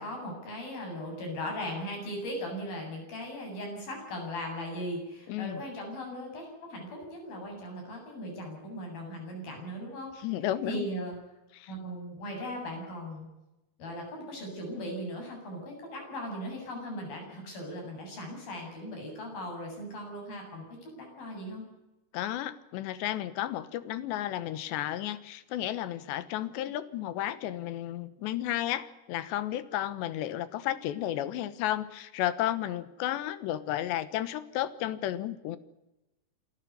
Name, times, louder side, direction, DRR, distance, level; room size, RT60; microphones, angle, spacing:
voice 1, 0.0-10.1 10.7-11.1 11.7-13.3 13.8-21.6, equal, 55° left, 2 dB, 9.5 m, -38 dB
voice 2, 5.3-5.6 10.2-10.9 11.5-11.7 22.1-35.6, left 12 dB, 85° left, 15 dB, 3.4 m, -33 dB
27.5 x 13.5 x 9.7 m, 0.99 s
omnidirectional pair, 5.0 m